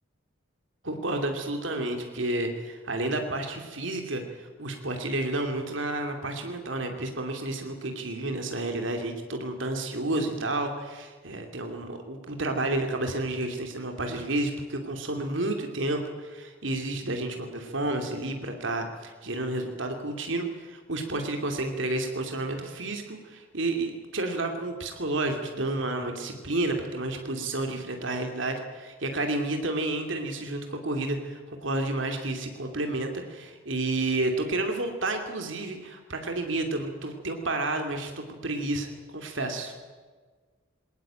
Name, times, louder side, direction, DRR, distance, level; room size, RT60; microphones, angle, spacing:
voice 1, 0.8-39.7, right 2 dB, 75° right, 4 dB, 2.7 m, -31 dB
21.5 x 18.5 x 8.9 m, 1.4 s
head